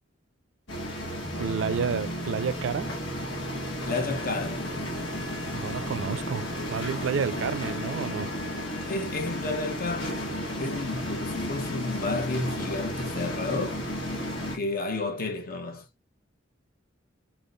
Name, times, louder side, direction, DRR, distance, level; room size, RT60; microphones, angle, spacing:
sound 1, 0.7-14.6, equal, 75° left, 1.8 m, -33 dB
sound 2, 1.2-10.3 10.6-10.7, right 1 dB, 20° left, 1.3 m, -44 dB
voice 1, 1.4-2.9 5.5-8.3, right 6 dB, 75° right, 0.4 m, -30 dB
voice 2, 3.9-4.7 7.2-7.4 8.9-10.3 10.6-13.9 14.5-15.9, left 3 dB, 45° left, 0.9 m, -31 dB
4.4 x 3.5 x 2.5 m
head